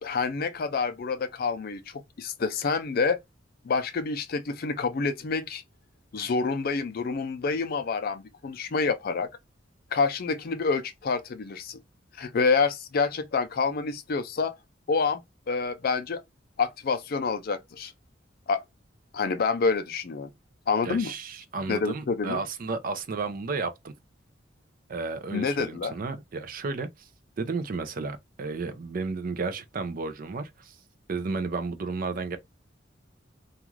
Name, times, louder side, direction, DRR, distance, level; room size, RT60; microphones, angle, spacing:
voice 1, 0.0-3.2 3.6-5.6 6.1-9.3 9.9-11.8 12.2-14.5 14.9-15.2 15.5-16.2 16.6-17.9 18.5-18.6 19.1-20.3 20.7-21.1 21.7-22.4 25.3-25.9, left 4 dB, 50° left, 0.4 m, -27 dB
voice 2, 20.8-23.9 24.9-27.1 27.4-30.8 31.1-32.4, right 4 dB, 50° right, 0.4 m, -33 dB
2.4 x 2.3 x 3.0 m
head